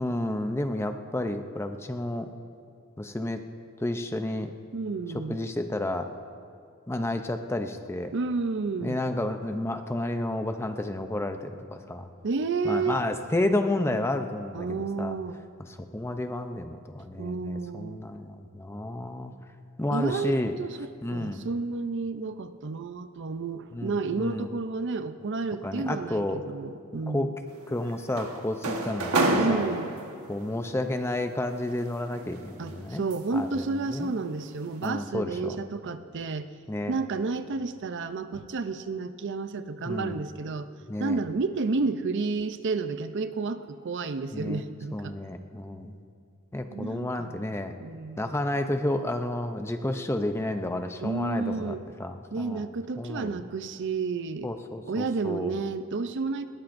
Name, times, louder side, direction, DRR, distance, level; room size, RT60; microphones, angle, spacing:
voice 1, 0.0-2.3 3.0-3.4 3.8-4.5 5.1-6.1 6.9-8.1 8.8-12.1 12.6-15.2 15.6-19.3 19.8-20.5 21.0-21.5 23.7-24.5 25.6-26.4 27.1-27.3 27.7-29.6 30.3-33.0 33.3-33.6 33.9-34.1 34.8-35.6 36.7-37.0 39.8-40.2 40.9-41.2 44.3-44.6 44.9-45.9 46.5-47.7 48.2-52.7 53.0-53.4 54.4-55.6, left 1 dB, 10° left, 7 dB, 0.5 m, -31 dB
voice 2, 4.7-5.4 8.1-9.0 12.2-13.0 14.5-15.4 17.2-18.0 19.9-27.3 29.4-29.9 32.6-36.5 36.9-40.7 41.0-45.1 46.7-47.5 47.8-48.3 51.0-51.8 52.3-54.5 54.9-56.5, right 4 dB, 55° right, 11 dB, 0.5 m, -31 dB
sound 1, 27.5-30.4 31.6-33.5 33.9-34.2 34.6-34.9, right 2 dB, 80° right, 1.3 m, -29 dB
20.5 x 18.5 x 2.6 m, 2.4 s
head